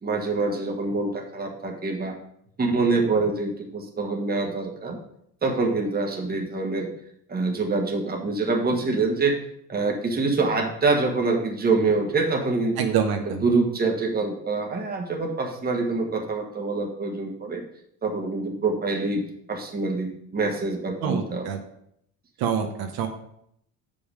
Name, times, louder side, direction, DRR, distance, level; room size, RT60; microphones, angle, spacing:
voice 1, 0.0-2.1 2.6-5.0 5.4-6.9 7.3-9.4 9.7-13.0 13.2-17.6 18.0-19.2 19.5-21.4, right 3 dB, 25° right, 1 dB, 1.4 m, -25 dB
voice 2, 12.8-13.4 21.0-21.6 22.4-23.1, right 7 dB, 65° right, 4 dB, 1.0 m, -26 dB
7.0 x 5.3 x 4.9 m, 0.72 s
cardioid pair, 130°, 40 cm